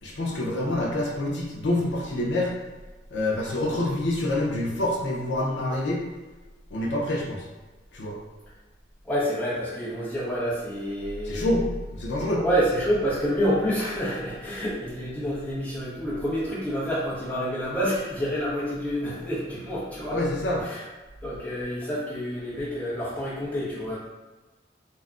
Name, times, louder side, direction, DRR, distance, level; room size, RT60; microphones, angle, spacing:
voice 1, 0.0-2.5 3.1-6.0 6.7-7.4 7.9-8.2 11.2-12.4 20.1-20.6, left 1 dB, 80° left, -2 dB, 0.5 m, -26 dB
voice 2, 9.0-11.5 12.4-20.2 20.6-20.8 21.2-24.0, equal, 10° left, -10 dB, 0.8 m, -28 dB
2.3 x 2.1 x 3.6 m, 1.2 s
head